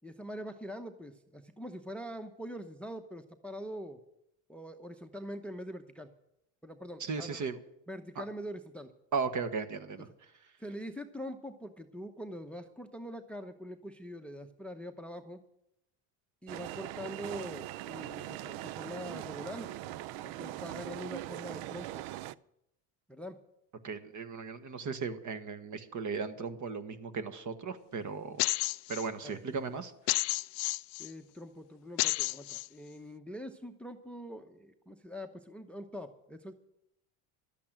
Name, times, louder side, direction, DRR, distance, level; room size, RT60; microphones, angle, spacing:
voice 1, 0.0-4.0 4.5-6.1 6.6-7.5 7.9-8.9 10.6-15.4 16.4-19.7 20.2-22.0 23.1-23.4 29.2-29.4 31.0-36.5, equal, 5° left, 9 dB, 0.8 m, -43 dB
voice 2, 7.0-7.6 8.1-8.2 9.1-10.1 23.8-28.4 28.9-29.9, right 5 dB, 40° right, 11 dB, 1.4 m, -36 dB
sound 1, 16.5-22.4, right 14 dB, 70° right, 0.6 m, -41 dB
sound 2, 28.4-29.1 30.1-31.1 32.0-32.7, left 23 dB, 60° left, 0.5 m, -31 dB
12.0 x 8.5 x 8.7 m, 0.81 s
supercardioid pair, 90°, 47 cm